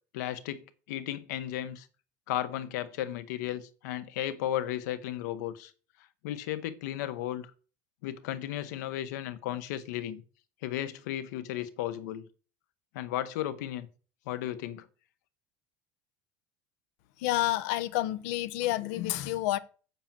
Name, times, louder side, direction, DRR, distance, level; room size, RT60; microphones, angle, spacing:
voice 1, 0.1-1.9 2.3-5.7 6.2-7.5 8.0-10.2 10.6-12.2 12.9-13.9 14.3-14.9, left 12 dB, 90° left, 1.2 m, -34 dB
voice 2, 17.2-19.6, left 15 dB, 65° left, 0.8 m, -29 dB
7.3 x 6.7 x 7.5 m
cardioid pair, 175°, 9 cm